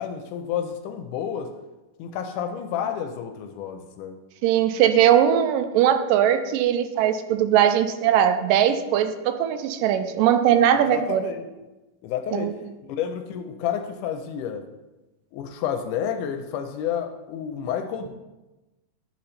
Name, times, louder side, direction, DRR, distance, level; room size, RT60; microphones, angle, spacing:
voice 1, 0.0-1.5 2.0-4.2 10.7-11.5 12.0-12.5 12.8-14.7 15.3-18.1, left 8 dB, 80° left, 6 dB, 2.0 m, -30 dB
voice 2, 4.4-11.2 12.3-12.5, right 10 dB, 85° right, 9 dB, 2.2 m, -20 dB
10.5 x 4.4 x 4.1 m, 1.1 s
omnidirectional pair, 3.8 m